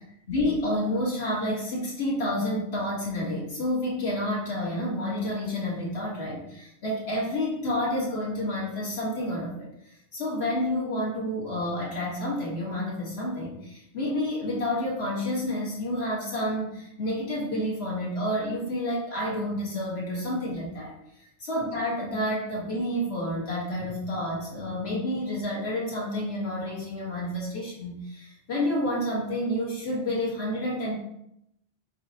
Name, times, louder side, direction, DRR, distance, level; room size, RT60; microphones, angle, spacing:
voice 1, 0.0-9.7 10.1-30.9, left 1 dB, 70° left, -5 dB, 1.3 m, -29 dB
4.0 x 3.9 x 2.6 m, 0.80 s
omnidirectional pair, 1.1 m